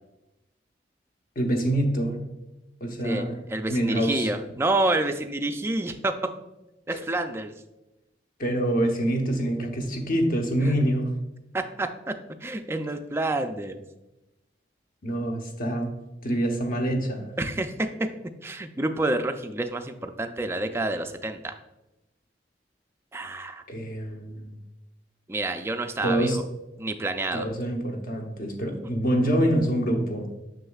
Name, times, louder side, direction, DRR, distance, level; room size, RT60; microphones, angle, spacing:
voice 1, 1.4-2.2 2.8-3.4 3.7-4.3 6.9-7.0 8.4-11.1 15.0-15.9 16.2-17.3 23.7-24.5 26.0-26.4 27.3-30.3, right 1 dB, 50° left, 3 dB, 0.9 m, -26 dB
voice 2, 3.0-6.1 6.9-7.5 11.5-12.1 12.4-13.8 17.4-17.9 18.4-21.6 23.1-23.6 25.3-26.4 26.8-27.5, right 2 dB, 15° right, 6 dB, 0.3 m, -28 dB
6.5 x 6.3 x 2.3 m, 0.96 s
head